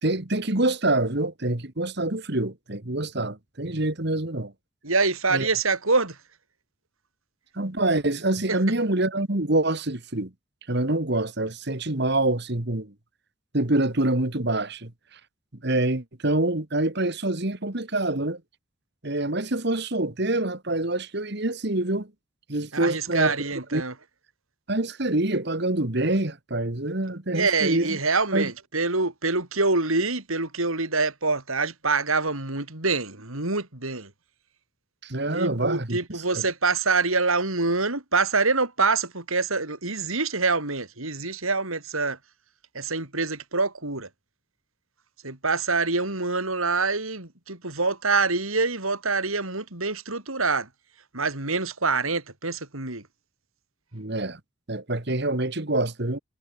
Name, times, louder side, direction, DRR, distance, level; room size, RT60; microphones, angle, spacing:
voice 1, 0.0-4.5 5.3-5.5 7.5-10.3 10.7-12.9 13.5-15.2 15.6-18.4 19.0-22.1 22.5-23.4 23.7-23.8 24.7-28.0 28.3-28.5 35.0-36.0 36.3-36.4 53.9-54.4 54.7-56.2, right 2 dB, 50° right, 1.9 m, -26 dB
voice 2, 4.8-6.2 22.7-23.9 27.3-34.1 35.3-42.2 42.7-44.1 45.2-50.7 51.1-53.0, right 3 dB, 80° right, 5.2 m, -25 dB
head